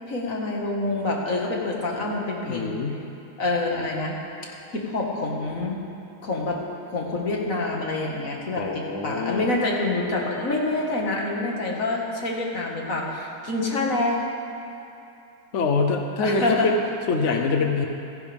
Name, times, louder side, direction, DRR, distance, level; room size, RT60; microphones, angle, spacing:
voice 1, 0.1-2.7 3.4-4.2 4.5-5.8 6.2-6.6 6.9-14.2 16.2-16.7 17.2-17.4, left 2 dB, 40° left, -2 dB, 2.0 m, -27 dB
voice 2, 2.4-3.0 8.5-9.6 15.5-16.8 17.1-17.8, left 4 dB, 65° left, 3 dB, 0.7 m, -24 dB
27.5 x 10.5 x 3.5 m, 2.8 s
omnidirectional pair, 2.4 m